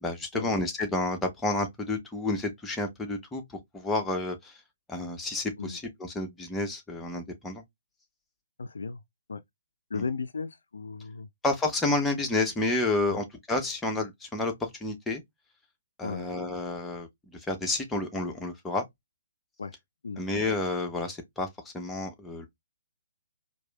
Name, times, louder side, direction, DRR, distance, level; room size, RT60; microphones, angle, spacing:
voice 1, 0.0-4.6 4.9-7.6 9.9-10.0 11.4-15.2 16.0-18.8 20.2-22.5, left 2 dB, 5° left, 0.8 m, -30 dB
voice 2, 8.6-9.0 9.3-9.4 9.9-11.3 13.1-13.2 16.0-16.3 19.6-19.7 20.0-20.2, left 4 dB, 60° left, 0.4 m, -35 dB
4.5 x 2.6 x 2.3 m
figure-of-eight pair, 130°, 0 cm